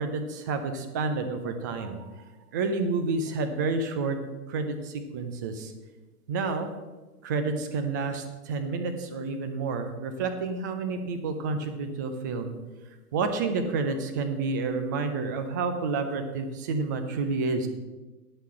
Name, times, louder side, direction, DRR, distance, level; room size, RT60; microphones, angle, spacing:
voice 1, 0.0-2.0 2.5-4.2 4.5-4.7 5.1-5.5 6.3-6.7 7.2-8.2 8.5-12.5 13.1-17.7, right 4 dB, 15° right, 7 dB, 0.3 m, -29 dB
10.0 x 5.7 x 7.6 m, 1.2 s
hypercardioid pair, 130°, 45 cm